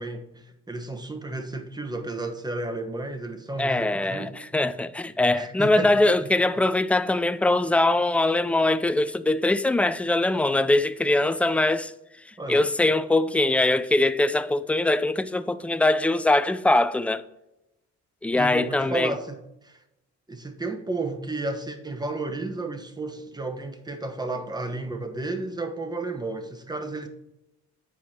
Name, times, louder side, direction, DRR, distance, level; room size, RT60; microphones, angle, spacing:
voice 1, 0.0-4.3 5.3-5.9 12.4-12.7 18.3-19.8 20.3-27.1, right 2 dB, 15° right, 1.1 m, -32 dB
voice 2, 3.6-11.9 12.5-17.2 18.2-19.1, left 2 dB, 5° left, 0.4 m, -22 dB
8.4 x 4.7 x 4.3 m
cardioid pair, 90°, 30 cm